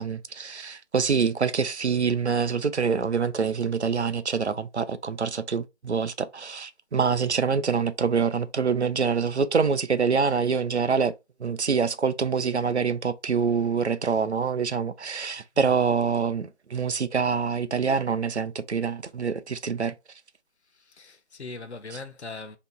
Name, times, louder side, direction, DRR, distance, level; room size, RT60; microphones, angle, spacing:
voice 1, 0.0-11.1 11.4-19.9, right 5 dB, 65° right, 0.5 m, -25 dB
voice 2, 20.7-22.6, left 3 dB, 65° left, 0.6 m, -40 dB
2.9 x 2.2 x 4.1 m
figure-of-eight pair, 180°, 36 cm